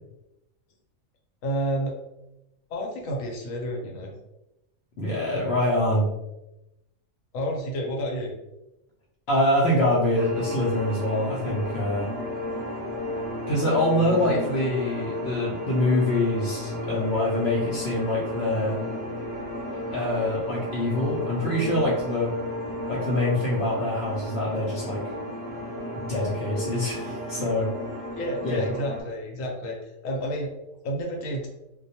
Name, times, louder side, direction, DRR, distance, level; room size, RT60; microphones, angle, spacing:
voice 1, 1.4-1.9 2.7-4.1 7.3-8.3 14.3-14.4 28.2-30.5 30.8-31.5, equal, 80° left, 0 dB, 1.0 m, -30 dB
voice 2, 5.0-6.1 9.3-12.1 13.5-18.8 19.7-22.3 22.9-25.0 26.1-27.7 28.4-28.6, left 1 dB, 65° left, -4 dB, 0.8 m, -25 dB
sound 1, 10.1-29.0, left 1 dB, 50° right, 0.8 m, -33 dB
2.2 x 2.2 x 2.7 m, 0.91 s
omnidirectional pair, 1.4 m